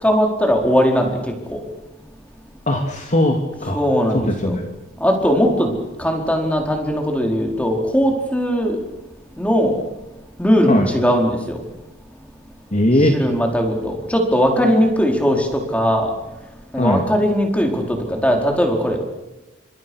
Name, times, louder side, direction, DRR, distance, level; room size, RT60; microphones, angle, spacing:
voice 1, 0.0-1.6 3.7-4.5 5.0-5.7 6.0-8.8 9.4-9.7 10.4-11.6 13.1-16.1 16.7-19.0, equal, 5° left, 1 dB, 4.7 m, -19 dB
voice 2, 2.7-3.8 4.1-4.7 10.7-10.9 12.7-13.2 16.8-17.0, left 1 dB, 35° left, 3 dB, 2.5 m, -19 dB
29.5 x 26.0 x 6.5 m, 0.99 s
head